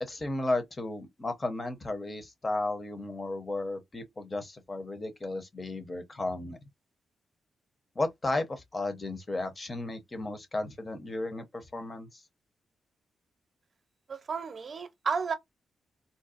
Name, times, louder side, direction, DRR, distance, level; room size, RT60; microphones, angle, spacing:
voice 1, 0.0-6.6 8.0-12.2, left 2 dB, 25° left, 0.8 m, -34 dB
voice 2, 14.1-15.3, right 5 dB, 45° right, 0.6 m, -32 dB
3.8 x 2.0 x 2.5 m
cardioid pair, 120°, 0 cm